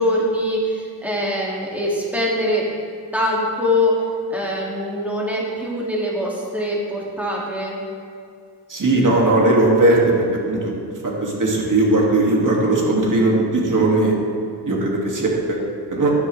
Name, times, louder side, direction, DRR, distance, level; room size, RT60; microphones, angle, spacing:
voice 1, 0.0-2.7 3.1-7.8, left 1 dB, 5° right, -5 dB, 2.3 m, -23 dB
voice 2, 8.7-10.7 11.0-14.1 14.7-15.6 15.9-16.1, right 2 dB, 45° right, -2 dB, 2.2 m, -18 dB
11.5 x 11.0 x 3.3 m, 2.2 s
wide cardioid pair, 115°, 43 cm